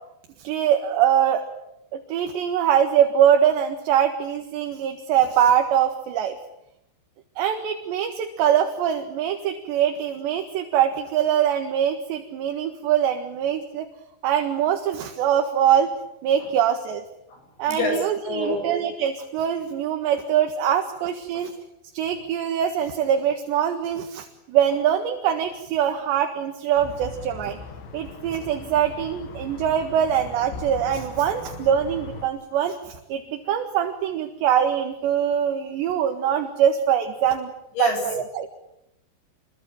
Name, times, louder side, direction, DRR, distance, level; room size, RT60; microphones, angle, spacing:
voice 1, 0.4-1.5 1.9-6.4 7.4-13.9 14.2-15.9 16.2-17.0 17.6-21.5 21.9-27.6 27.9-37.5 37.8-38.5, right 9 dB, 75° right, 5 dB, 3.9 m, -23 dB
voice 2, 17.7-18.7 37.8-38.0, left 3 dB, 60° left, 4 dB, 9.9 m, -27 dB
sound 1, 26.8-32.3, left 5 dB, 80° left, 5.0 m, -39 dB
28.0 x 22.5 x 9.1 m, 0.84 s
omnidirectional pair, 5.2 m